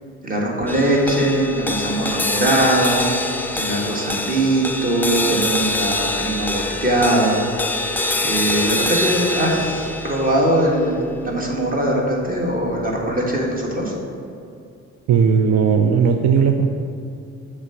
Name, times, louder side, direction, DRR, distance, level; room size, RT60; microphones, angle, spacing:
voice 1, 0.2-3.1 3.5-7.5 8.2-13.9, right 1 dB, 30° right, -1 dB, 1.4 m, -21 dB
sound 1, 0.7-13.2, left 2 dB, 5° left, 0.3 m, -25 dB
voice 2, 15.1-16.7, right 6 dB, 60° right, 5 dB, 0.5 m, -16 dB
7.0 x 3.3 x 5.3 m, 2.5 s
cardioid pair, 90°, 30 cm